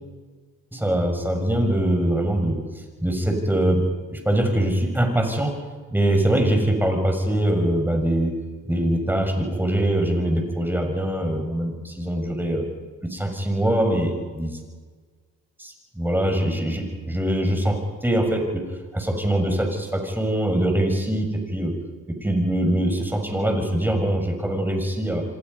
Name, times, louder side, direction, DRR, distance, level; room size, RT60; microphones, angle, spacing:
voice 1, 0.7-5.5 5.9-8.3 8.6-12.6 13.0-14.6 15.6-18.7 18.9-21.7 22.1-25.2, right 1 dB, 5° right, 3 dB, 6.5 m, -23 dB
28.0 x 26.0 x 5.6 m, 1.5 s
cardioid pair, 90°, 30 cm